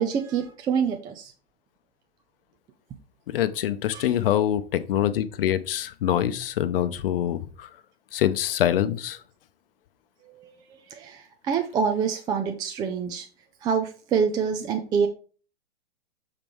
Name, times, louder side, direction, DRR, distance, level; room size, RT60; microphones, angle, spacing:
voice 1, 0.0-1.3 3.9-4.1 10.3-13.3 13.6-15.1, right 6 dB, 15° right, 5 dB, 0.3 m, -26 dB
voice 2, 3.3-7.7 8.1-9.2, left 11 dB, 60° left, 13 dB, 0.8 m, -25 dB
6.7 x 3.6 x 4.5 m, 0.38 s
hypercardioid pair, 115°, 32 cm